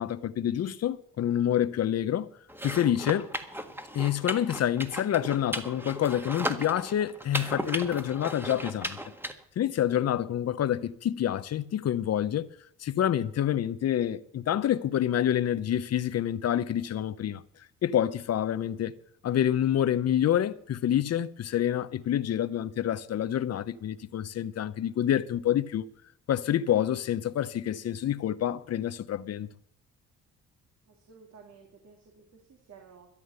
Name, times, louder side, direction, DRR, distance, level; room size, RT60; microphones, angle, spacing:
voice 1, 0.0-2.3 2.6-3.3 3.9-9.0 9.6-12.5 12.8-17.4 17.8-18.9 19.2-25.9 26.3-29.5, left 10 dB, 55° left, 0.9 m, -27 dB
sound 1, 2.5-9.3, right 1 dB, 5° right, 1.6 m, -36 dB
voice 2, 30.9-33.1, right 5 dB, 65° right, 3.0 m, -54 dB
13.5 x 11.0 x 6.7 m
cardioid pair, 90°, 30 cm